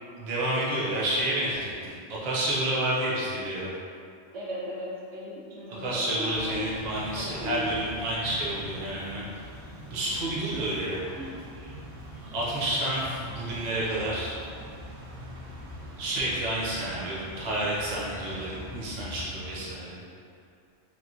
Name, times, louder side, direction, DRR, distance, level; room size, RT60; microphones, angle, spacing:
voice 1, 0.2-3.7 5.7-9.3 9.9-11.0 12.3-14.4 16.0-20.0, right 1 dB, 45° right, -6 dB, 0.6 m, -30 dB
voice 2, 4.3-6.7 7.1-7.7 9.9-10.0 11.2-11.4, equal, 85° right, -7 dB, 1.1 m, -37 dB
sound 1, 6.3-19.7, equal, 70° right, 0.9 m, -43 dB
3.0 x 2.5 x 2.7 m, 2.4 s
omnidirectional pair, 1.3 m